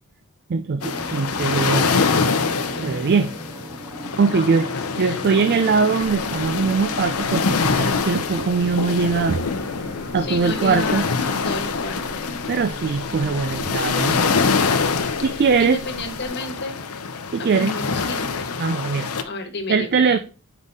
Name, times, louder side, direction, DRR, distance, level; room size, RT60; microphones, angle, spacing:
voice 1, 0.5-1.9 2.8-3.3 4.2-4.7 5.0-9.4 10.1-11.1 12.5-14.2 15.2-15.8 17.3-17.7 18.6-19.1 19.7-20.2, right 5 dB, 50° right, 0.4 m, -21 dB
sound 1, 0.8-19.2, left 5 dB, 85° left, 0.7 m, -25 dB
sound 2, 0.8-14.4, right 1 dB, 15° right, 0.7 m, -38 dB
voice 2, 4.3-5.2 10.2-12.2 15.3-16.8 17.4-18.6 19.2-19.9, left 2 dB, 55° left, 1.3 m, -32 dB
sound 3, 6.0-16.3, equal, 70° right, 2.8 m, -42 dB
5.4 x 5.0 x 4.1 m
head